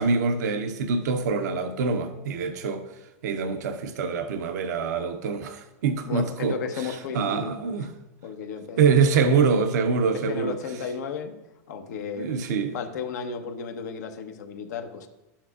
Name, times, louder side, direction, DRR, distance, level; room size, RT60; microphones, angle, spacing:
voice 1, 0.0-2.8 3.2-7.9 8.8-10.6 12.2-12.8, right 5 dB, 75° right, 0.6 m, -25 dB
voice 2, 6.0-7.9 8.2-8.8 9.2-9.3 10.1-11.3 11.7-12.4 12.7-15.1, left 6 dB, 80° left, 0.9 m, -34 dB
11.5 x 7.2 x 2.4 m
hypercardioid pair, 120°, 9 cm